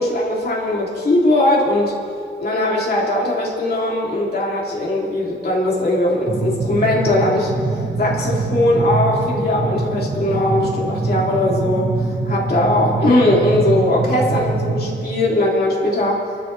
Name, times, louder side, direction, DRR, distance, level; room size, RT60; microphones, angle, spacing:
voice 1, 0.0-2.0 2.4-16.2, left 1 dB, 60° left, -4 dB, 3.4 m, -19 dB
sound 1, 6.3-15.0, right 3 dB, 40° right, 1.8 m, -24 dB
29.5 x 12.0 x 3.5 m, 2.5 s
wide cardioid pair, 95°, 19 cm